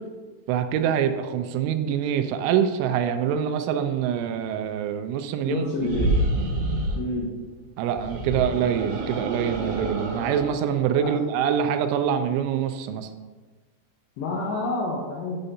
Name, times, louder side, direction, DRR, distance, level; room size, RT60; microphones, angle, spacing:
voice 1, 0.5-5.6 7.8-13.1, right 8 dB, 85° right, 7 dB, 2.8 m, -25 dB
voice 2, 5.5-6.1 7.0-7.3 11.0-11.1 14.2-15.4, left 2 dB, 85° left, -3 dB, 2.4 m, -28 dB
sound 1, 5.8-7.0 7.9-10.5, right 1 dB, 60° right, 2.5 m, -27 dB
9.8 x 6.6 x 2.6 m, 1.4 s
omnidirectional pair, 6.0 m